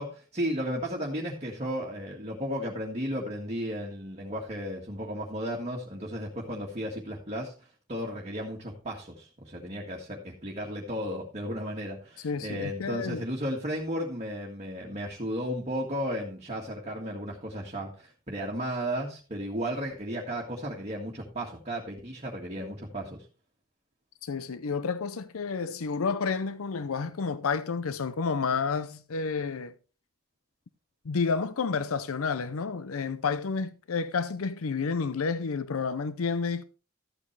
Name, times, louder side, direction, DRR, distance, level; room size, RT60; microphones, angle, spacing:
voice 1, 0.0-7.5 7.9-23.2, equal, 30° right, 1.7 m, -34 dB
voice 2, 12.2-13.2 24.2-29.7 31.0-36.6, left 5 dB, 75° left, 0.6 m, -30 dB
13.5 x 8.6 x 3.3 m
head